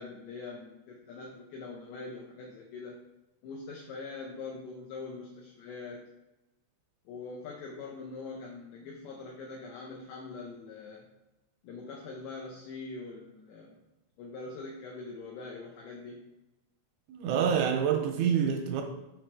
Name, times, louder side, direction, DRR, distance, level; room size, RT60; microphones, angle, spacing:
voice 1, 0.0-3.0 3.4-6.0 7.1-11.1 11.6-13.8 14.2-16.2, left 3 dB, 80° left, -1 dB, 2.5 m, -43 dB
voice 2, 17.1-18.8, right 7 dB, 85° right, 3 dB, 2.8 m, -27 dB
7.3 x 4.4 x 4.7 m, 1.0 s
omnidirectional pair, 5.9 m